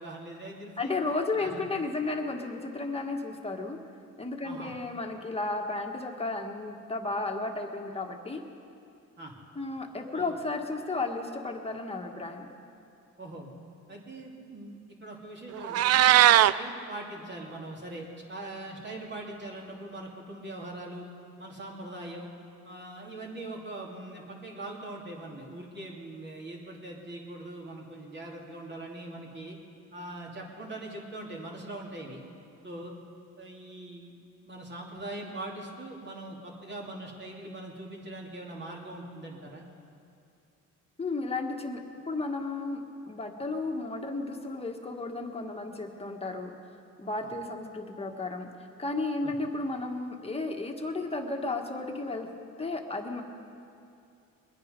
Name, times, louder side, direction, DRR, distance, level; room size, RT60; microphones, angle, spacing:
voice 1, 0.0-1.0 1.3-1.6 4.4-4.7 9.2-9.3 10.1-10.3 13.2-13.5 13.9-21.0 21.4-22.3 22.6-29.6 29.9-32.2 32.6-32.9 33.4-34.1 34.4-39.6 47.2-47.3 49.2-49.3, right 1 dB, 35° right, -2 dB, 3.0 m, -42 dB
voice 2, 0.8-3.8 4.2-8.4 9.5-12.5 41.0-41.8 42.1-46.5 47.0-48.5 48.8-52.3 52.6-53.2, left 3 dB, 20° left, 3 dB, 1.6 m, -33 dB
Meow, 15.5-16.5, right 12 dB, 55° right, 0.4 m, -19 dB
22.0 x 9.7 x 5.3 m, 2.6 s
cardioid pair, 90°, 30 cm